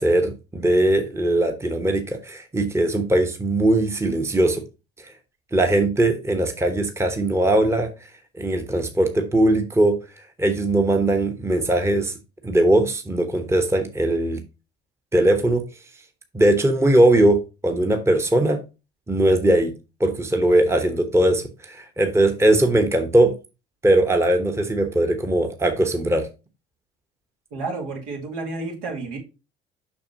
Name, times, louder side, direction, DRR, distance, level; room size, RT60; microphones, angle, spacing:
voice 1, 0.0-4.6 5.0-5.1 5.5-7.9 8.4-10.0 10.4-12.1 12.4-14.4 15.1-15.6 16.3-18.6 19.1-19.7 20.0-23.3 23.8-26.3, right 1 dB, 10° right, 1.1 m, -20 dB
voice 2, 27.5-29.2, right 3 dB, 70° right, 2.4 m, -31 dB
7.1 x 5.8 x 2.8 m
figure-of-eight pair, 60°, 30 cm